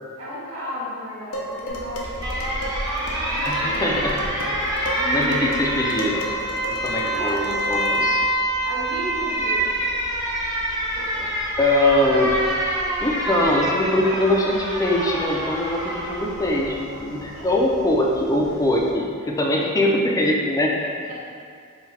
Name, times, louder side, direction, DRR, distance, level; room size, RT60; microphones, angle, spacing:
voice 1, 0.1-2.3 3.3-3.9 4.9-5.7 7.0-7.4 8.6-9.6 10.9-11.3 17.3-17.5 20.8-21.1, equal, 80° right, -9 dB, 1.1 m, -34 dB
Dishes pots and pans, 1.3-8.2, equal, 90° left, 0.6 m, -34 dB
Alarm, 1.7-18.9, right 1 dB, 20° right, 0.7 m, -26 dB
voice 2, 3.4-4.5 5.1-6.3 6.7-8.2 11.6-12.3 13.0-20.7, left 1 dB, 15° left, -1 dB, 0.4 m, -22 dB
4.8 x 2.7 x 3.2 m, 2.3 s
head